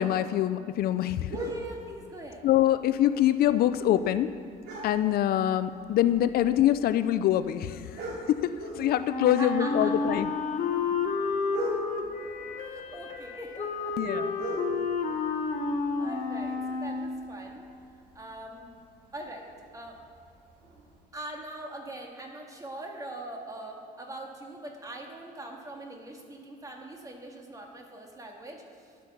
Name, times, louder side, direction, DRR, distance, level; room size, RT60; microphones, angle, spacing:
voice 1, 0.0-1.3 2.4-4.3 4.8-10.3 14.0-14.3, left 12 dB, 65° left, 12 dB, 0.4 m, -25 dB
sound 1, 1.2-21.0, right 1 dB, 75° right, 2.8 m, -44 dB
voice 2, 1.3-2.4 9.4-10.0 12.5-14.0 15.1-15.7 16.0-17.7 18.2-18.7 19.1-19.5 19.7-20.0 21.1-29.1, right 1 dB, 20° right, 1 dB, 1.8 m, -42 dB
Wind instrument woodwind instrument, 9.0-17.2, left 4 dB, 50° left, 1.3 m, -30 dB
11.5 x 8.4 x 5.8 m, 2.5 s
cardioid pair, 110°, 17 cm